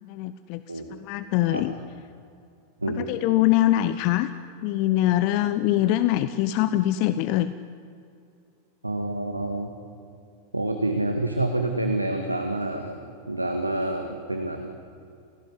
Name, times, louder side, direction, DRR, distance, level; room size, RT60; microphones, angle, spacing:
voice 1, 0.0-1.7 2.9-4.3 4.6-7.5, left 14 dB, 45° left, 13 dB, 0.8 m, -23 dB
voice 2, 8.8-9.7 10.5-13.0 13.3-14.7, right 2 dB, 85° right, 5 dB, 1.8 m, -27 dB
29.5 x 16.5 x 9.8 m, 2.5 s
figure-of-eight pair, 90°, 0 cm